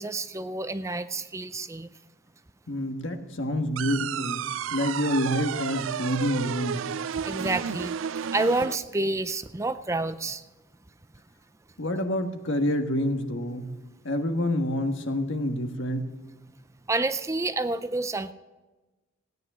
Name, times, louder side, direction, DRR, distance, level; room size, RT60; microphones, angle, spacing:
voice 1, 0.0-1.9 7.2-7.9 8.3-10.4 16.9-18.3, right 2 dB, 15° right, 12 dB, 0.4 m, -29 dB
voice 2, 2.7-4.5 4.7-6.8 11.8-13.7 14.0-16.1, left 1 dB, 75° left, 6 dB, 1.5 m, -27 dB
sound 1, 3.8-8.8, right 8 dB, 80° right, 0.4 m, -32 dB
17.0 x 9.6 x 6.1 m, 1.2 s
head